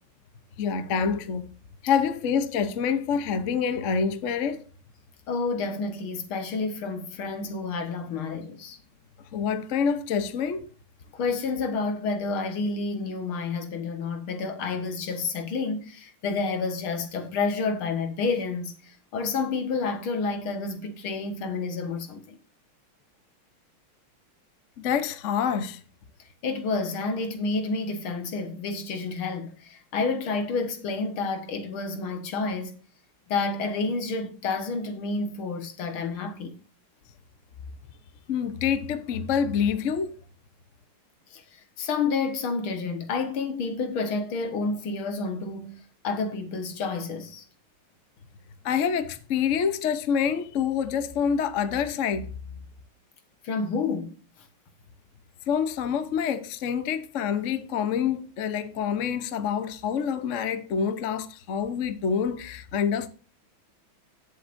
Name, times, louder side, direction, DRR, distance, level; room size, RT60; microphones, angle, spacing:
voice 1, 0.6-1.5 1.8-4.7 9.3-10.7 24.8-25.8 38.3-40.2 48.6-52.3 55.5-63.1, left 7 dB, 55° left, 0.9 m, -27 dB
voice 2, 5.3-8.8 11.1-22.4 26.4-32.7 33.3-36.6 41.3-41.4 41.8-47.4 53.4-54.1, left 4 dB, 80° left, 2.3 m, -29 dB
17.5 x 7.2 x 2.6 m
omnidirectional pair, 2.3 m